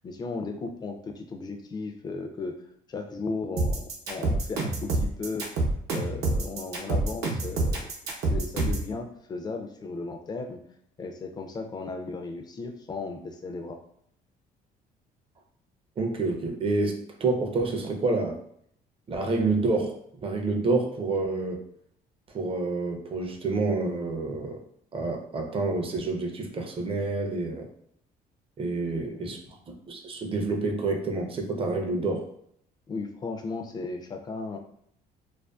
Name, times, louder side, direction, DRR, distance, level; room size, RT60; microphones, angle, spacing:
voice 1, 0.0-2.6 2.9-5.5 5.9-7.9 8.3-10.6 11.0-13.8 28.9-29.5 32.9-34.6, left 3 dB, 25° left, 5 dB, 0.4 m, -35 dB
sound 1, 3.6-8.9, right 2 dB, 80° right, 0.7 m, -27 dB
voice 2, 16.0-18.4 19.1-20.0 20.2-21.6 22.3-24.6 24.9-27.7 28.6-29.4 29.9-32.2, right 3 dB, 35° right, 2 dB, 0.5 m, -28 dB
2.4 x 2.4 x 2.3 m, 0.69 s
cardioid pair, 110°, 17 cm